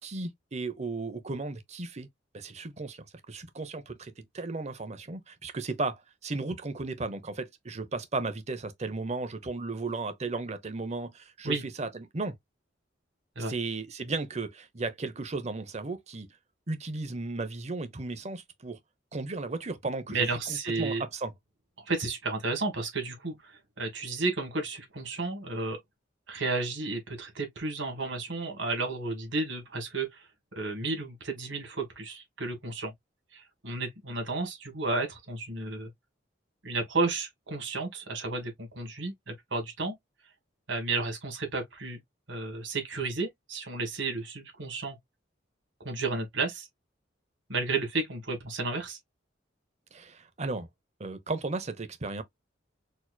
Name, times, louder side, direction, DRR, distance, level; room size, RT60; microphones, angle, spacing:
voice 1, 0.0-2.1 2.3-12.3 13.4-16.3 16.7-18.8 19.1-21.3 49.9-50.7 51.0-52.2, right 3 dB, 35° right, 0.7 m, -35 dB
voice 2, 20.1-21.0 21.9-25.8 26.3-32.9 33.3-35.9 36.6-40.0 40.7-42.0 42.3-45.0 45.8-46.7 47.5-49.0, right 3 dB, 75° right, 1.8 m, -32 dB
4.3 x 2.9 x 2.2 m
head